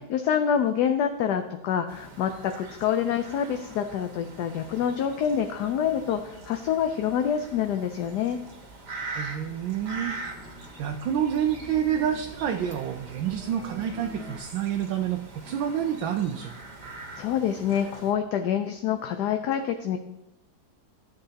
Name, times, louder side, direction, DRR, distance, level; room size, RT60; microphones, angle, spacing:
voice 1, 0.0-8.4 17.2-20.0, left 8 dB, 70° left, 6 dB, 1.1 m, -26 dB
sound 1, 1.9-18.1, right 3 dB, 60° right, 1.9 m, -43 dB
sound 2, 8.3-14.4, left 2 dB, 10° right, 0.7 m, -47 dB
voice 2, 9.1-10.1 10.8-16.5, right 9 dB, 85° right, 3 dB, 1.4 m, -28 dB
12.5 x 7.8 x 2.8 m, 0.87 s
omnidirectional pair, 2.0 m